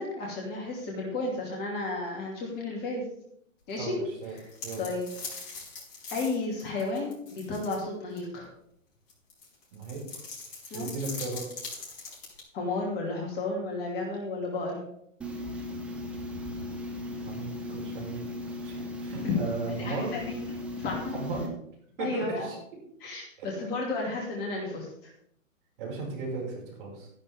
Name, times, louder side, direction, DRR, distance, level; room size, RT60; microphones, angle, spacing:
voice 1, 0.0-3.1 3.7-4.0 4.3-4.4 4.8-5.1 6.1-8.5 10.7-10.9 12.5-14.8 19.2-20.3 20.8-21.2 22.0-22.5 23.0-24.9, left 3 dB, 25° left, -1 dB, 2.7 m, -32 dB
voice 2, 3.8-4.3 4.6-4.8 9.7-10.0 10.7-11.4 16.6-16.8 17.2-20.1 21.1-21.5 22.0-22.6 23.4-23.5 25.8-27.1, right 4 dB, 40° right, -2 dB, 5.9 m, -36 dB
sound 1, 4.2-7.8 8.2-8.3 9.1-12.4, left 4 dB, 40° left, 5.2 m, -41 dB
sound 2, 15.2-21.5, left 1 dB, 5° right, 0.6 m, -37 dB
13.0 x 11.0 x 3.6 m, 0.71 s
hypercardioid pair, 135°, 40 cm